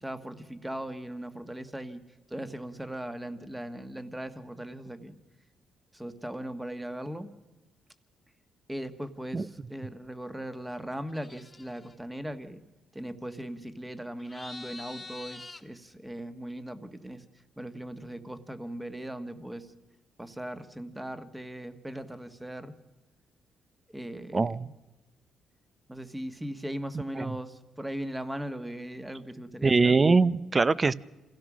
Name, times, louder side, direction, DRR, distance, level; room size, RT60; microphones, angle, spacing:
voice 1, 0.0-2.0 2.3-5.2 5.9-7.3 8.7-12.6 12.9-17.2 17.6-19.7 20.2-22.7 23.9-24.7 25.9-29.9, right 1 dB, 10° right, 10 dB, 1.5 m, -39 dB
sound 1, 11.1-11.9 14.2-15.6, left 3 dB, 20° left, 1.7 m, -45 dB
voice 2, 24.3-24.7 27.2-27.3 29.6-30.9, right 4 dB, 30° right, 19 dB, 0.6 m, -22 dB
27.0 x 16.5 x 6.2 m, 1.1 s
cardioid pair, 90°, 0 cm